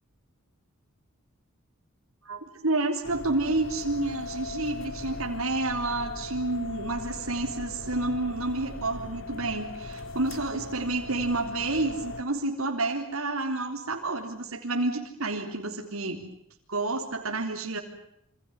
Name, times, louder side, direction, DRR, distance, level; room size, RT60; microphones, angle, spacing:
voice 1, 2.3-16.2 16.7-17.8, right 2 dB, 75° right, 2 dB, 3.8 m, -29 dB
sound 1, 3.0-12.2, left 2 dB, 65° left, 3.6 m, -39 dB
27.5 x 26.5 x 7.2 m, 0.75 s
head